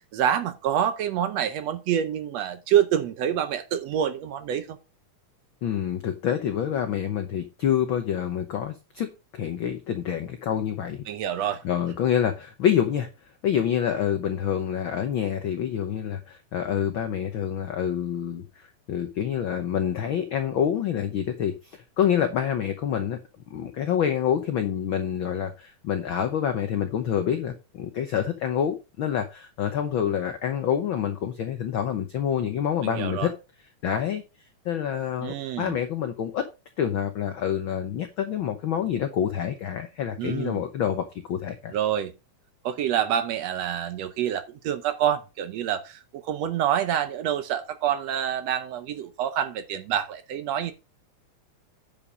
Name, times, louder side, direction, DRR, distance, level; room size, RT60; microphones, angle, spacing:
voice 1, 0.1-4.8 11.1-11.6 32.8-33.3 35.2-35.7 40.2-40.6 41.7-42.1 42.6-50.7, right 10 dB, 70° right, 1.7 m, -27 dB
voice 2, 5.6-11.0 11.6-13.1 13.4-23.2 23.5-33.3 33.8-34.2 34.6-36.5 36.8-41.7, left 9 dB, 85° left, 1.1 m, -27 dB
9.7 x 5.2 x 5.0 m
omnidirectional pair, 3.5 m